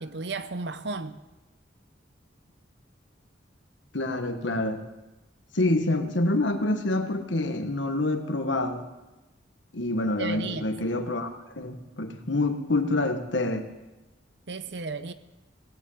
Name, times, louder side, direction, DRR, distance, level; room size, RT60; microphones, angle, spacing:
voice 1, 0.0-1.2 10.2-10.7 14.5-15.1, right 3 dB, 65° right, 0.7 m, -33 dB
voice 2, 3.9-4.8 5.5-8.8 9.7-13.7, left 2 dB, 75° left, 1.4 m, -27 dB
17.5 x 7.7 x 8.6 m
head